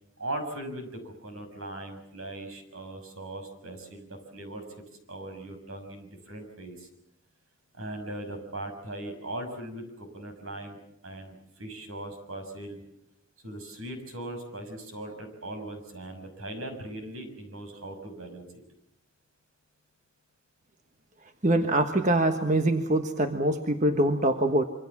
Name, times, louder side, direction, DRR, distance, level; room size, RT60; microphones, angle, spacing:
voice 1, 0.2-4.6 5.1-6.9 7.7-12.8 13.4-18.5, right 1 dB, 75° right, 6 dB, 6.3 m, -39 dB
voice 2, 21.4-24.6, right 1 dB, 35° right, 6 dB, 1.3 m, -24 dB
26.5 x 24.5 x 7.3 m, 0.79 s
head